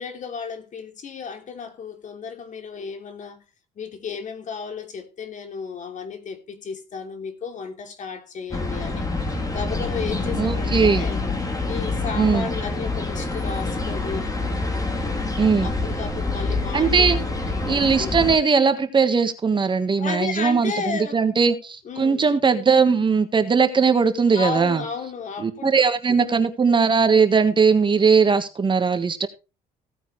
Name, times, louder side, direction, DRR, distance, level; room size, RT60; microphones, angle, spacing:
voice 1, 0.0-3.4 3.8-11.2 11.6-14.3 15.6-17.1 17.4-18.1 20.0-21.2 21.8-22.3 24.3-26.4, left 5 dB, 45° left, 2.9 m, -33 dB
sound 1, 8.5-18.4, left 3 dB, 20° left, 3.3 m, -26 dB
voice 2, 10.3-11.1 12.1-12.5 15.4-15.7 16.7-17.2 17.7-24.8 25.4-29.3, right 5 dB, 30° right, 1.5 m, -19 dB
16.5 x 9.1 x 3.2 m
cardioid pair, 110°, 17 cm